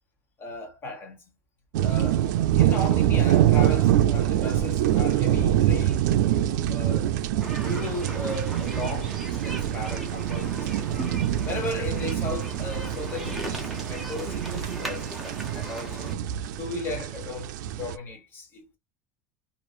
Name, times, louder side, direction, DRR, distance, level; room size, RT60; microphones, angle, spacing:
voice 1, 0.4-1.4 1.8-7.1 7.6-10.9 11.4-16.2 16.6-17.5 17.8-18.7, left 2 dB, 25° left, 1.1 m, -36 dB
sound 1, 1.7-18.0, right 11 dB, 90° right, 0.4 m, -25 dB
sound 2, 7.4-16.2, right 1 dB, ahead, 0.6 m, -38 dB
3.1 x 2.5 x 2.3 m
cardioid pair, 175°, 10 cm